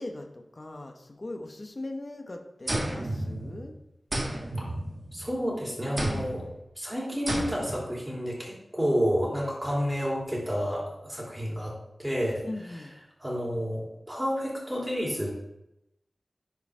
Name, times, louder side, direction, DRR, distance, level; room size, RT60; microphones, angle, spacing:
voice 1, 0.0-3.7 5.9-6.4 12.4-12.9, left 2 dB, 45° left, 5 dB, 1.1 m, -39 dB
sound 1, 2.7-3.7 4.1-5.4 6.0-6.5 7.3-7.9, right 1 dB, 45° right, 1.8 m, -32 dB
voice 2, 5.1-6.4 6.8-11.7 12.0-12.5 13.2-15.5, equal, 10° right, -4 dB, 3.3 m, -30 dB
10.5 x 4.9 x 3.7 m, 0.86 s
wide cardioid pair, 60°, 0 cm